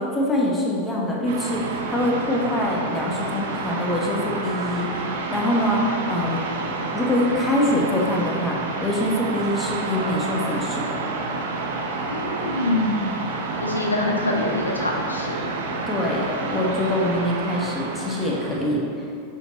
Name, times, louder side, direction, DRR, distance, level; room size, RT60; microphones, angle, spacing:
voice 1, 0.0-6.4 6.9-11.0 15.9-19.1, left 1 dB, 10° left, -3 dB, 1.1 m, -24 dB
sound 1, 1.3-18.7, right 3 dB, 60° right, 0.7 m, -29 dB
voice 2, 12.1-15.4, left 2 dB, 80° left, -1 dB, 0.8 m, -25 dB
5.9 x 4.8 x 4.0 m, 2.3 s
figure-of-eight pair, 90°, 0 cm